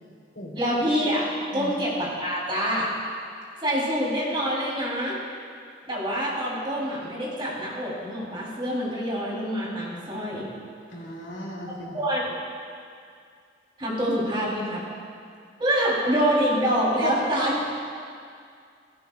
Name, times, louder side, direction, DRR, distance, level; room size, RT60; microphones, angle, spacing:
voice 1, 0.5-2.9 3.6-5.2 5.9-10.4 11.9-12.3 13.8-14.8 15.6-17.6, equal, 30° right, -5 dB, 3.2 m, -26 dB
voice 2, 10.9-12.0 17.0-17.2, left 1 dB, 85° left, -4 dB, 2.9 m, -35 dB
17.0 x 16.0 x 2.3 m, 2.2 s
head